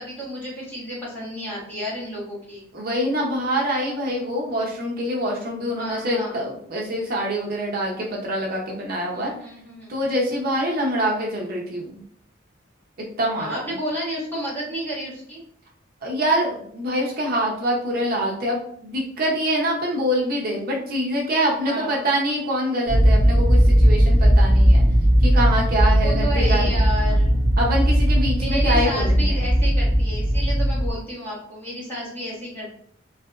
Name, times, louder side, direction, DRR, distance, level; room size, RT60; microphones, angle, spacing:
voice 1, 0.0-2.7 5.8-6.4 9.1-9.9 13.3-15.4 21.6-22.0 26.0-27.4 28.4-32.7, equal, 10° left, -7 dB, 1.1 m, -31 dB
voice 2, 2.7-9.3 9.9-12.0 13.2-13.6 16.0-24.8 25.2-26.9 27.6-29.5, equal, 50° right, -1 dB, 0.6 m, -25 dB
sound 1, 22.9-30.9, equal, 40° left, 0.7 m, -17 dB
2.8 x 2.4 x 2.3 m, 0.63 s
head